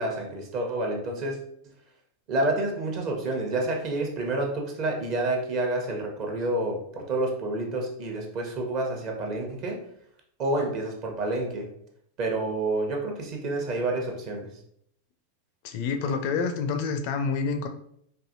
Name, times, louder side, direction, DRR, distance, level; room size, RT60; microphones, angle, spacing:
voice 1, 0.0-1.4 2.3-9.8 10.4-11.7 12.2-14.5, right 2 dB, 40° right, 2 dB, 0.9 m, -29 dB
voice 2, 15.6-17.7, left 5 dB, 45° left, 6 dB, 0.4 m, -28 dB
4.5 x 2.7 x 2.7 m, 0.71 s
figure-of-eight pair, 90°, 0 cm